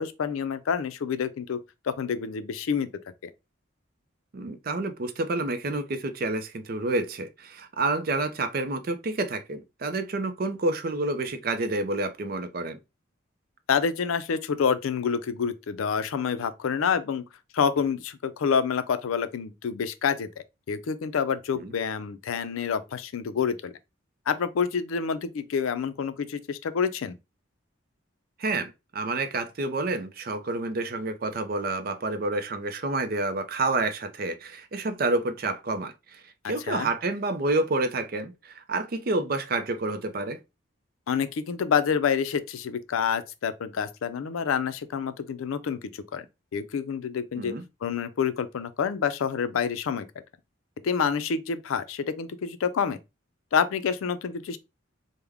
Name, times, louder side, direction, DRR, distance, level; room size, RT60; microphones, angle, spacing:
voice 1, 0.0-1.6 1.8-2.9 13.7-17.2 17.5-20.3 20.7-23.7 24.3-27.2 36.4-36.9 41.1-46.3 46.5-47.5 47.8-50.1 50.8-53.0 53.5-54.6, left 6 dB, 90° left, 0.4 m, -27 dB
voice 2, 4.3-12.8 21.6-21.7 28.4-40.4 47.4-47.6, right 2 dB, 45° right, 0.4 m, -29 dB
3.4 x 2.1 x 3.4 m
head